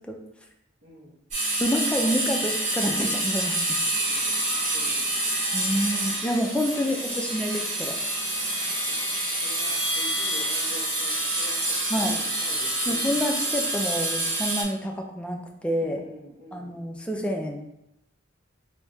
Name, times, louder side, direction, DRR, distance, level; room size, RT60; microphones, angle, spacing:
voice 1, 0.8-1.2 4.1-5.0 5.6-6.1 6.7-7.0 8.9-9.0 9.4-13.0 15.8-16.8, equal, 60° right, -5 dB, 1.2 m, -46 dB
sound 1, 1.3-14.6, right 1 dB, 40° right, 1.2 m, -27 dB
voice 2, 1.6-3.8 5.5-8.0 11.9-12.2 12.9-16.0 16.5-17.7, equal, 5° left, 1 dB, 0.3 m, -28 dB
3.1 x 2.7 x 3.4 m, 0.86 s
head